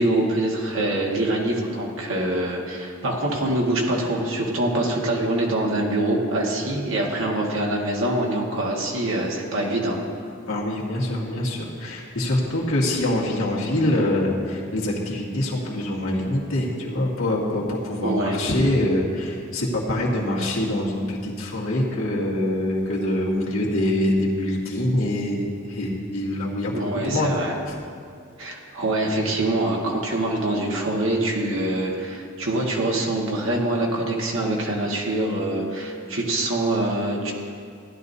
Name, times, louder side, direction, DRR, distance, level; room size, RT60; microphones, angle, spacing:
voice 1, 0.0-10.0 18.0-18.4 26.7-27.5 28.4-37.3, right 1 dB, 65° right, -2 dB, 1.7 m, -24 dB
voice 2, 10.5-27.3, left 1 dB, 75° left, -4 dB, 2.0 m, -24 dB
15.5 x 10.5 x 2.7 m, 2.3 s
head